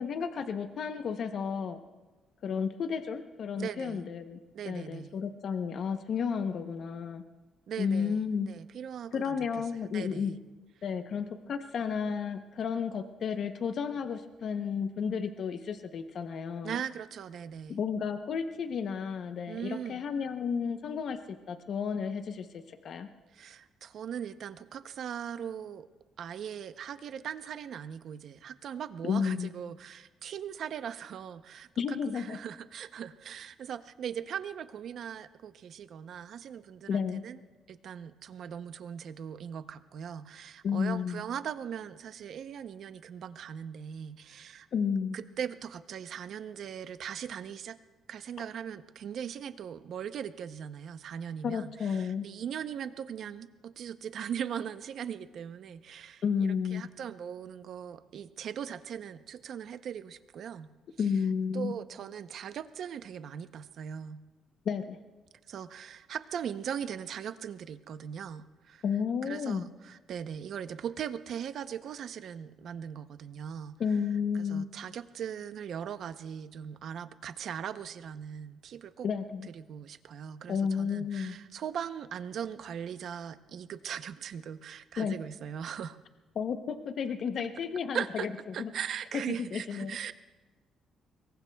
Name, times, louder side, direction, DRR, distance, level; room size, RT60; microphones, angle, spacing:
voice 1, 0.0-1.8 2.4-4.4 4.6-7.2 7.8-8.5 9.1-10.4 10.8-16.8 17.7-23.1 29.0-29.5 31.8-32.4 36.9-37.2 40.6-41.2 44.7-45.2 51.4-52.3 56.2-56.9 61.0-61.7 64.7-65.0 68.8-69.6 73.8-74.7 79.0-79.5 80.5-81.4 85.0-85.1 86.4-88.3 88.6-88.7 89.4-90.0, left 6 dB, 45° left, 8 dB, 0.7 m, -32 dB
voice 2, 3.6-4.1 4.5-5.2 7.7-10.4 16.6-17.8 19.5-20.0 23.3-25.9 26.2-37.4 37.7-44.7 45.1-47.8 48.1-60.7 61.0-61.1 61.5-64.2 65.5-68.8 69.2-73.8 74.3-79.1 79.4-86.0 87.9-88.3 88.5-90.1, right 8 dB, 50° right, 12 dB, 0.6 m, -39 dB
25.0 x 22.5 x 2.3 m, 1.2 s
cardioid pair, 160°, 0 cm